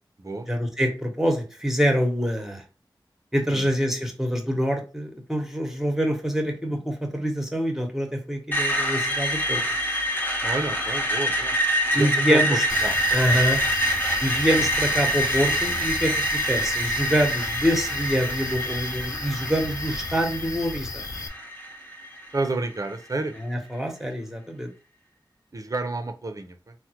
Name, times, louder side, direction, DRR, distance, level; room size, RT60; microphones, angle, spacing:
voice 1, 0.5-2.6 3.3-9.6 11.9-12.6 13.1-13.6 14.2-21.0 23.4-24.7, equal, 5° right, 3 dB, 0.9 m, -25 dB
Screech, 8.5-22.5, equal, 25° left, 0.8 m, -26 dB
voice 2, 10.4-11.6 11.9-13.0 22.3-23.3 25.5-26.7, right 2 dB, 40° right, 6 dB, 0.5 m, -30 dB
sound 1, 12.7-21.3, left 3 dB, 45° left, 0.3 m, -36 dB
3.5 x 2.1 x 2.9 m, 0.33 s
wide cardioid pair, 55°, 8 cm